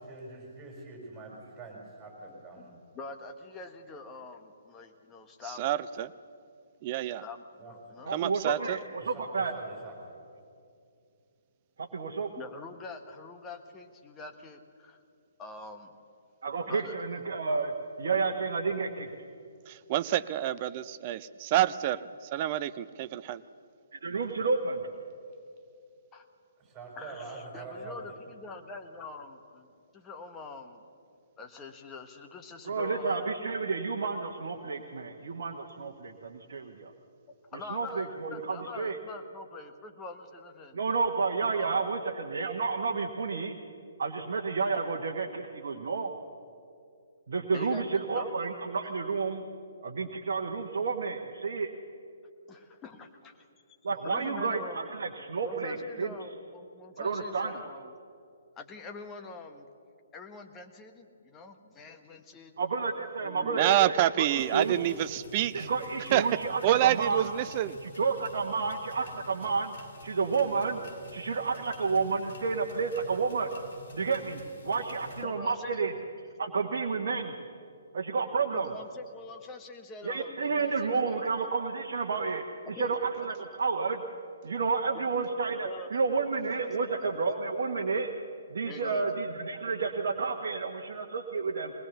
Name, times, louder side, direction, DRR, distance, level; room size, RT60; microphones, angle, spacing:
voice 1, 0.0-2.7 3.5-3.9 7.6-7.8 9.0-10.2 26.6-28.2, right 3 dB, 15° right, -1 dB, 5.6 m, -45 dB
voice 2, 2.9-5.6 7.2-8.1 12.3-15.0 15.4-15.9 16.7-17.0 26.1-26.2 27.0-30.8 31.4-33.3 37.4-40.8 41.5-42.0 45.7-45.8 47.5-48.4 52.5-53.5 54.0-54.9 55.4-57.9 58.6-59.7 60.1-62.6 63.2-63.8 75.2-75.8 78.5-81.3 82.7-83.3 84.9-85.9 86.6-86.9 88.6-89.1, left 4 dB, 15° left, 5 dB, 1.4 m, -45 dB
voice 3, 5.4-6.1 6.8-7.2 8.1-8.8 19.7-22.0 22.3-23.4 63.4-65.7 66.1-67.8, right 13 dB, 30° right, 15 dB, 0.6 m, -28 dB
voice 4, 8.1-8.8 9.0-9.5 11.8-12.3 16.4-19.1 24.0-24.8 32.7-36.9 37.7-39.0 40.7-43.5 44.0-46.1 47.3-49.4 49.8-51.7 53.8-56.1 57.0-57.5 62.6-64.7 65.5-67.3 67.8-69.8 70.0-70.8 71.1-73.5 73.9-75.9 76.4-77.4 77.9-78.7 80.0-84.0 84.4-88.1 88.5-91.7, right 4 dB, 50° right, 1 dB, 1.3 m, -31 dB
sound 1, 64.4-75.3, left 3 dB, 50° left, 2.8 m, -50 dB
21.5 x 19.5 x 6.9 m, 2.4 s
figure-of-eight pair, 130°, 0 cm